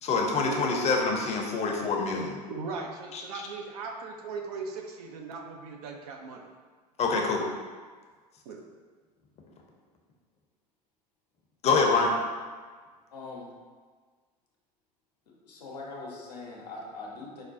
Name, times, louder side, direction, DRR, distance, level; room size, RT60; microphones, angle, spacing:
voice 1, 0.0-2.4 3.1-3.2 7.0-7.5 11.6-12.1, left 4 dB, 30° left, 1 dB, 0.6 m, -25 dB
voice 2, 2.5-6.5 8.5-8.6, right 4 dB, 65° right, 2 dB, 0.5 m, -38 dB
voice 3, 13.1-13.5 15.4-17.4, left 3 dB, 80° left, -3 dB, 0.7 m, -41 dB
4.8 x 2.2 x 2.6 m, 1.5 s
figure-of-eight pair, 75°, 21 cm